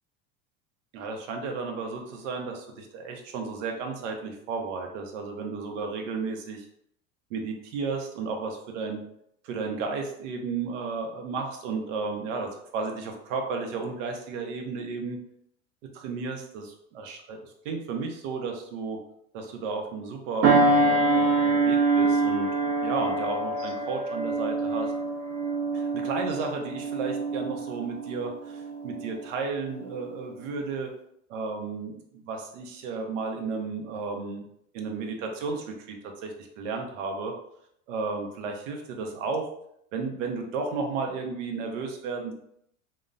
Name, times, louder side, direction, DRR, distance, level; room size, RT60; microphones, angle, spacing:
voice 1, 0.9-6.7 7.3-9.0 9.4-15.2 15.9-19.0 19.3-22.5 22.8-24.9 25.7-30.9 31.3-34.4 34.7-37.3 37.9-39.5 39.9-42.3, right 4 dB, 80° right, 3 dB, 0.7 m, -33 dB
sound 1, 20.4-29.3 29.7-30.0, right 3 dB, 40° right, 0.6 m, -25 dB
2.9 x 2.0 x 2.4 m, 0.71 s
supercardioid pair, 110°, 37 cm